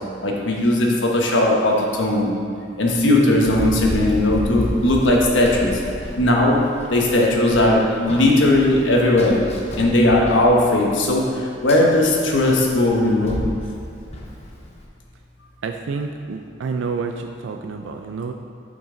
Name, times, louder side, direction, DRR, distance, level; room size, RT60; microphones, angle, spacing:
voice 1, 0.2-2.3 2.8-5.7 6.2-6.6 6.9-9.4 9.8-11.2 11.6-13.4, left 1 dB, 75° left, -1 dB, 1.2 m, -17 dB
Run, 3.5-14.8, left 1 dB, 35° left, 0.8 m, -32 dB
voice 2, 15.6-18.3, right 4 dB, 80° right, 4 dB, 0.4 m, -29 dB
8.8 x 5.3 x 3.8 m, 2.4 s
head